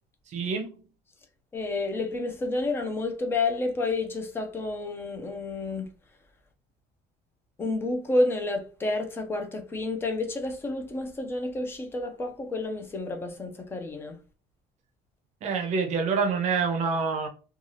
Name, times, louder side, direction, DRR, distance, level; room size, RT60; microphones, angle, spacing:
voice 1, 0.3-0.7 15.4-17.3, right 5 dB, 40° right, 0.6 m, -26 dB
voice 2, 1.5-5.9 7.6-14.2, left 2 dB, 15° left, 0.4 m, -30 dB
2.7 x 2.3 x 3.1 m
cardioid pair, 180°, 17 cm